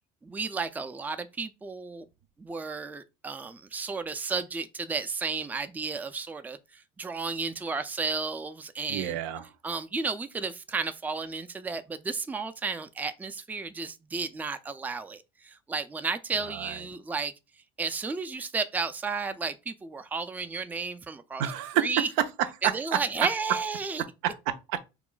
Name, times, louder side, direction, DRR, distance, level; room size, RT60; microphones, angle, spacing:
voice 1, 0.2-2.1 2.4-9.2 9.6-17.3 17.8-21.4 21.7-22.1 22.6-24.0, right 4 dB, 10° right, 0.3 m, -33 dB
voice 2, 8.9-9.5 16.4-16.8 21.4-23.3 24.2-24.8, right 10 dB, 80° right, 0.4 m, -29 dB
2.4 x 2.1 x 3.8 m
supercardioid pair, 75°, 19 cm